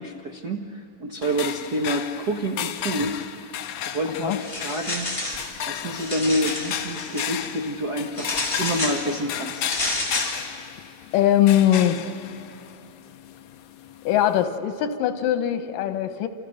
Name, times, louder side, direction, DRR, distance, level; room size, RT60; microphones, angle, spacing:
voice 1, 0.0-3.5 3.8-5.1 5.7-9.6, right 1 dB, 60° right, 2 dB, 1.0 m, -28 dB
sound 1, 1.2-14.4, left 10 dB, 70° left, 1.8 m, -34 dB
sound 2, 4.4-5.5 5.9-7.3 8.2-9.0 9.6-10.4, left 1 dB, 10° left, 3.2 m, -30 dB
voice 2, 11.1-12.0 14.0-16.3, left 11 dB, 90° left, 9 dB, 2.8 m, -21 dB
28.0 x 27.5 x 6.6 m, 2.8 s
omnidirectional pair, 3.8 m